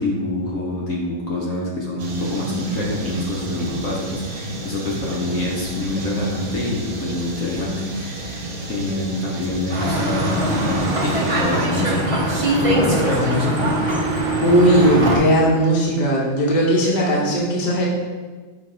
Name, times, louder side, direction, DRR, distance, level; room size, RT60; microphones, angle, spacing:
voice 1, 0.0-13.8, left 2 dB, 60° left, -4 dB, 1.2 m, -26 dB
sound 1, 2.0-11.7, right 2 dB, 60° right, 1.2 m, -32 dB
sound 2, 9.7-15.2, right 1 dB, 35° right, 0.5 m, -21 dB
voice 2, 14.4-17.8, equal, 30° left, -4 dB, 1.1 m, -17 dB
5.4 x 3.4 x 5.1 m, 1.3 s
omnidirectional pair, 1.7 m